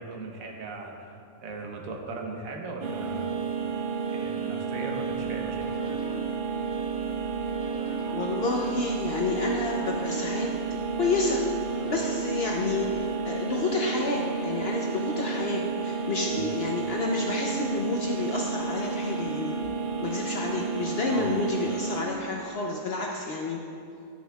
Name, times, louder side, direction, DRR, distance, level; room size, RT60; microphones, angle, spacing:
voice 1, 0.0-3.3 4.1-5.7 16.3-16.5 21.1-21.3, right 3 dB, 85° right, 2 dB, 1.3 m, -38 dB
sound 1, 2.8-22.1, right 5 dB, 65° right, 0.5 m, -31 dB
sound 2, 5.1-13.0, right 1 dB, 5° right, 0.9 m, -45 dB
voice 2, 8.1-11.4 11.9-19.5 20.0-23.6, left 3 dB, 60° left, 0 dB, 0.7 m, -30 dB
11.0 x 6.2 x 2.3 m, 2.4 s
omnidirectional pair, 1.4 m